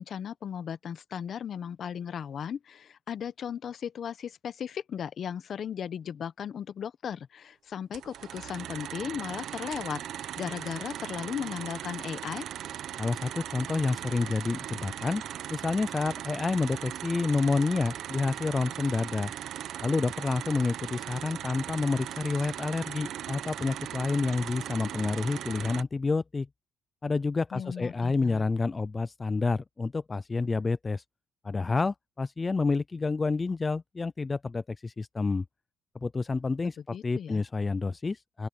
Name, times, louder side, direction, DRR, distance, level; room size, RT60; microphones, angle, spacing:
voice 1, 0.0-12.5 27.5-28.4 36.9-37.4, left 8 dB, 55° left, 1.1 m, -36 dB
sound 1, 7.9-25.8, right 11 dB, 70° right, 1.3 m, -39 dB
voice 2, 13.0-15.2 15.5-19.3 19.8-26.5 27.0-31.0 31.4-35.4 36.0-38.5, left 3 dB, 25° left, 0.4 m, -29 dB
open air
cardioid pair, 100°, 0 cm